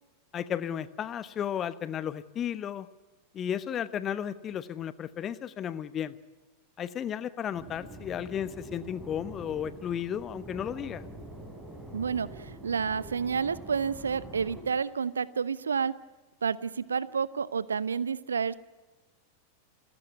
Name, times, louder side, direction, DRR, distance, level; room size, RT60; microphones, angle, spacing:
voice 1, 0.3-2.9 3.3-6.1 6.8-11.1, left 9 dB, 25° left, 15 dB, 1.1 m, -34 dB
sound 1, 7.5-14.6, right 1 dB, 5° right, 7.3 m, -45 dB
voice 2, 11.9-16.0 16.4-18.6, right 6 dB, 70° right, 19 dB, 0.9 m, -30 dB
29.0 x 16.5 x 9.6 m, 1.2 s
figure-of-eight pair, 90°, 0 cm